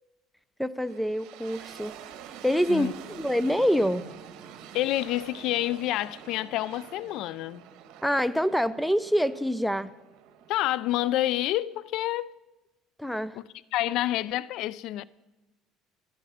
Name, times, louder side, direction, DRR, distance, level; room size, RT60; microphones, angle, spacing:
voice 1, 0.6-1.9 2.4-4.0 8.0-9.9 13.0-13.4, equal, ahead, 0.4 m, -26 dB
sound 1, 0.8-11.7, right 9 dB, 70° right, 1.2 m, -47 dB
voice 2, 4.7-7.6 10.5-12.3 13.3-13.4 13.7-15.0, left 14 dB, 70° left, 0.4 m, -28 dB
15.5 x 11.0 x 5.0 m
supercardioid pair, 100°, 0 cm